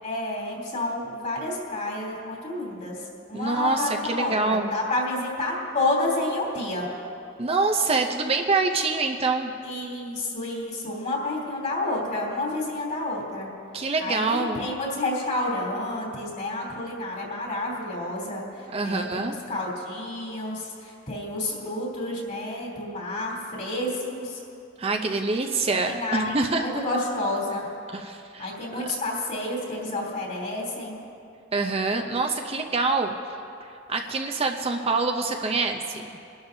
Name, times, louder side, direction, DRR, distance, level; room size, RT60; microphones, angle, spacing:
voice 1, 0.0-6.9 9.6-13.5 14.0-24.4 25.8-27.7 28.4-31.0, left 2 dB, 40° left, -2 dB, 3.1 m, -30 dB
voice 2, 3.3-4.7 7.4-9.5 13.7-14.6 18.7-19.4 24.8-26.6 27.9-28.5 31.5-33.2 33.6-36.0, right 3 dB, 30° right, 4 dB, 0.6 m, -25 dB
23.5 x 12.0 x 2.7 m, 2.5 s
head